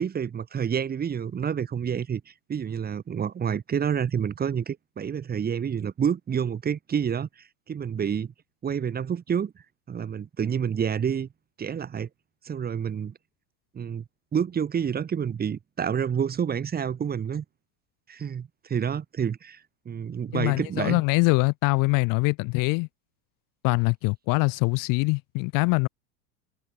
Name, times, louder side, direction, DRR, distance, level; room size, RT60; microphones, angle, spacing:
voice 1, 0.0-7.3 7.7-8.3 8.6-9.5 9.9-11.3 11.6-12.1 12.4-13.1 13.7-14.0 14.3-17.4 18.1-19.6 19.9-21.0, right 7 dB, 20° right, 2.5 m, -28 dB
voice 2, 20.3-22.9 23.6-25.9, left 29 dB, 45° left, 1.0 m, -23 dB
supercardioid pair, 140°, 47 cm